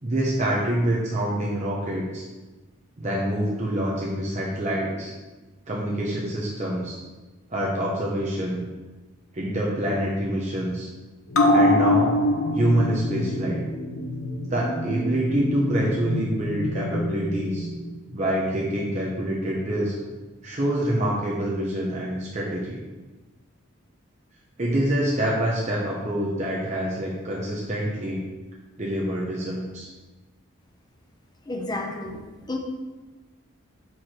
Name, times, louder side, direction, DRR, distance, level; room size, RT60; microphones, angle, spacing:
voice 1, 0.0-2.2 3.0-5.1 5.7-7.0 7.5-8.7 9.3-10.9 11.5-12.2 12.5-13.6 14.5-17.7 18.1-19.9 20.4-22.8 24.6-28.2 28.8-29.9, right 1 dB, 35° right, -4 dB, 0.8 m, -26 dB
sound 1, 11.3-18.2 18.6-18.7, left 1 dB, 80° left, 0.8 m, -25 dB
voice 2, 31.5-32.6, left 2 dB, 20° left, 1 dB, 0.8 m, -31 dB
4.7 x 4.7 x 6.0 m, 1.2 s
head